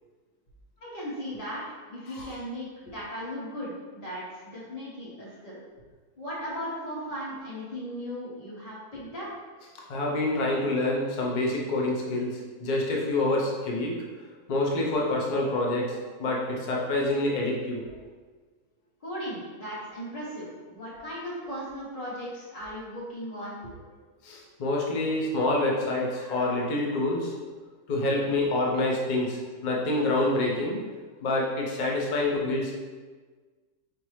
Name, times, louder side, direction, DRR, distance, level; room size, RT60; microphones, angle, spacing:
voice 1, 0.8-5.6 6.2-9.3 19.0-23.6, equal, 30° left, -8 dB, 0.8 m, -37 dB
voice 2, 9.9-13.9 14.5-17.8 24.2-27.4 27.9-30.8 31.2-32.7, left 2 dB, 50° left, -2 dB, 0.5 m, -27 dB
5.1 x 2.6 x 3.1 m, 1.4 s
omnidirectional pair, 1.7 m